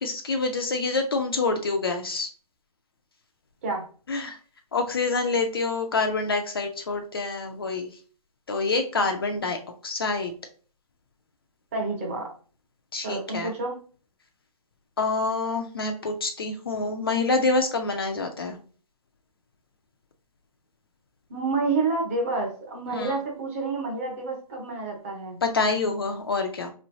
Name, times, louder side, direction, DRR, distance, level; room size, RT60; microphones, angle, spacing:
voice 1, 0.0-2.3 4.1-4.4 4.7-7.9 8.5-9.6 9.8-10.3 12.9-13.5 15.0-18.6 22.9-23.2 25.4-26.7, left 3 dB, 35° left, 4 dB, 0.4 m, -26 dB
voice 2, 11.7-12.3 13.0-13.8 21.3-25.4, right 3 dB, 20° right, 0 dB, 0.7 m, -29 dB
3.7 x 3.1 x 2.6 m, 0.40 s
hypercardioid pair, 160°, 20 cm